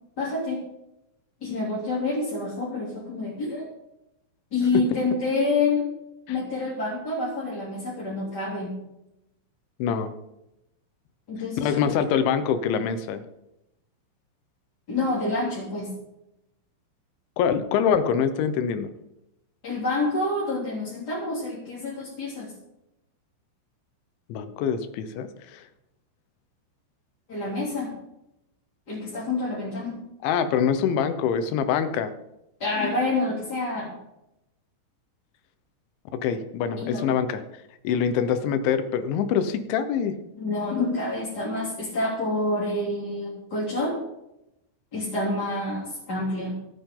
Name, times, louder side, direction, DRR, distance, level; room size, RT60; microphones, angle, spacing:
voice 1, 0.2-0.6 1.4-3.6 4.5-5.8 6.3-8.7 11.3-12.0 14.9-15.9 19.6-22.5 27.3-27.9 28.9-30.0 32.6-33.9 36.8-37.1 40.4-43.9 44.9-46.6, left 2 dB, 25° left, -6 dB, 2.6 m, -27 dB
voice 2, 9.8-10.1 11.6-13.2 17.4-18.9 24.3-25.6 30.2-32.1 36.1-37.4 37.8-40.2, left 7 dB, 75° left, 10 dB, 3.1 m, -24 dB
25.0 x 8.6 x 3.8 m, 0.87 s
omnidirectional pair, 5.9 m